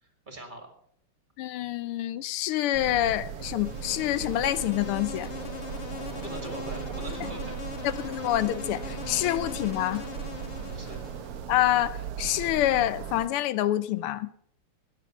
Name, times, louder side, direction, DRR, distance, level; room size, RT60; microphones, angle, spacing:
voice 1, 0.0-0.7 6.0-7.5 9.6-9.7 10.7-11.0, right 1 dB, 20° right, 2.3 m, -42 dB
voice 2, 1.4-5.3 8.0-10.0 11.5-14.3, left 13 dB, 85° left, 1.6 m, -27 dB
sound 1, 2.7-13.3, right 8 dB, 90° right, 1.8 m, -38 dB
Insect, 3.3-11.5, left 6 dB, 40° left, 1.0 m, -41 dB
15.5 x 9.9 x 6.1 m
omnidirectional pair, 2.4 m